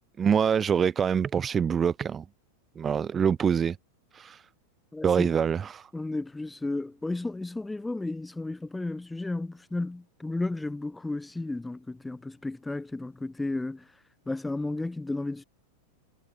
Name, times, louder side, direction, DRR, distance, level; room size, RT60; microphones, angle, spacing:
voice 1, 0.2-2.2 2.7-3.8 4.1-4.4 5.0-5.9, right 7 dB, 20° right, 3.2 m, -25 dB
voice 2, 4.9-5.3 5.9-13.8 14.3-15.4, left 2 dB, 5° left, 7.9 m, -33 dB
figure-of-eight pair, 90°, 0 cm